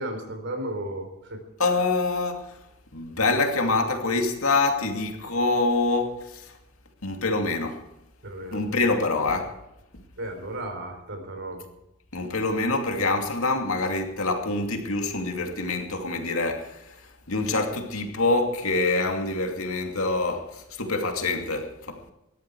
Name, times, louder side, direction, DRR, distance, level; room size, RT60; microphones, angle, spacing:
voice 1, 0.0-1.4 8.2-8.9 10.2-11.7, right 1 dB, 55° right, 4.0 m, -34 dB
voice 2, 1.6-2.7 2.9-6.6 7.0-7.9 8.5-9.6 12.1-22.0, left 3 dB, 70° left, 2.6 m, -26 dB
19.0 x 14.0 x 4.8 m
head